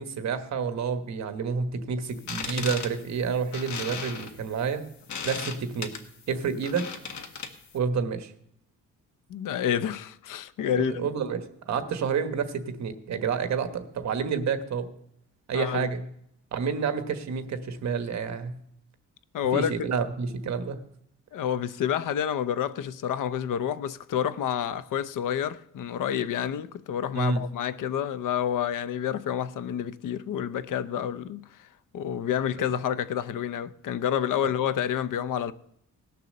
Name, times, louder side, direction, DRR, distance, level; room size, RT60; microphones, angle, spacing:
voice 1, 0.0-4.8 5.2-5.9 6.3-6.8 7.7-8.3 10.7-14.9 15.5-16.0 16.5-18.5 19.5-20.8 27.1-27.5, right 6 dB, 55° right, 1.2 m, -29 dB
sound 1, 2.1-7.8, left 6 dB, 60° left, 1.3 m, -37 dB
voice 2, 9.3-11.1 15.5-15.9 19.3-19.7 21.3-31.7 31.9-35.5, left 9 dB, 75° left, 0.7 m, -29 dB
18.0 x 6.8 x 6.5 m
wide cardioid pair, 165°, 32 cm